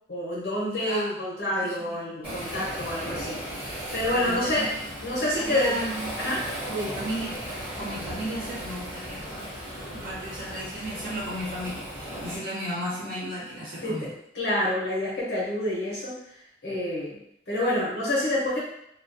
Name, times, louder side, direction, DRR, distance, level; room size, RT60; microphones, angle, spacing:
voice 1, 0.1-4.7 5.0-5.8 6.2-7.0 13.8-16.2 16.6-17.2 17.5-18.6, left 1 dB, 75° left, -5 dB, 0.7 m, -28 dB
voice 2, 0.7-1.1 1.5-2.1 4.1-4.7 5.2-6.2 6.7-9.5 9.9-14.1, equal, 50° right, -7 dB, 1.0 m, -35 dB
Waves surf, 2.2-12.4, right 1 dB, 10° right, 0.9 m, -36 dB
2.3 x 2.3 x 2.5 m, 0.76 s
head